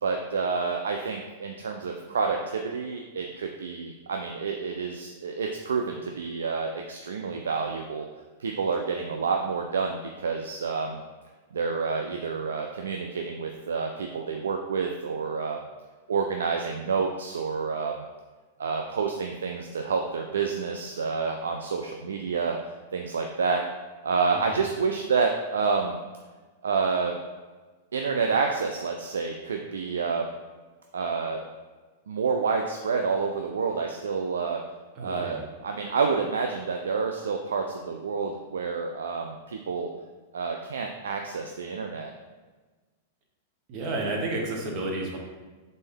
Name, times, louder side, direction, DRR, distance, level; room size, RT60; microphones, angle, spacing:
voice 1, 0.0-8.1 8.4-11.0 11.5-15.6 16.1-18.0 18.6-22.6 22.9-23.6 24.0-26.0 26.6-27.2 27.9-30.3 30.9-31.4 32.1-34.6 35.0-39.9 40.3-42.1, right 5 dB, 80° right, 3 dB, 0.3 m, -28 dB
voice 2, 34.9-35.4 43.7-45.2, right 2 dB, 45° right, 0 dB, 1.0 m, -31 dB
3.8 x 3.5 x 3.5 m, 1.3 s
hypercardioid pair, 110°, 0 cm